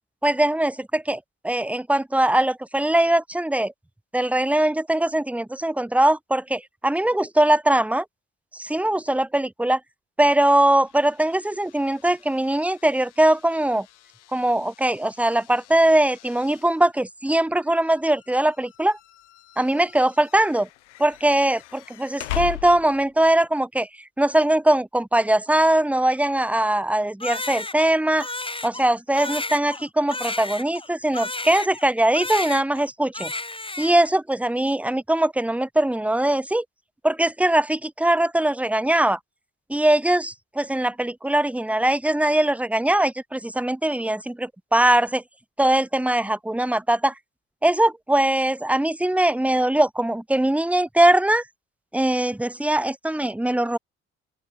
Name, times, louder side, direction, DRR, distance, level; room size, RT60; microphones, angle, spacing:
voice 1, 0.2-3.7 4.1-8.0 8.5-9.8 10.2-13.9 14.3-19.0 19.6-20.7 21.0-23.9 24.2-28.3 28.6-33.3 33.8-36.6 37.0-39.2 39.7-45.2 45.6-47.1 47.6-51.4 51.9-53.8, right 1 dB, 5° right, 1.1 m, -21 dB
sound 1, 10.4-23.2, left 17 dB, 80° left, 3.6 m, -41 dB
Crying sobbing, 27.2-32.9 33.1-34.1, left 2 dB, 15° left, 5.2 m, -32 dB
open air
figure-of-eight pair, 45°, 35 cm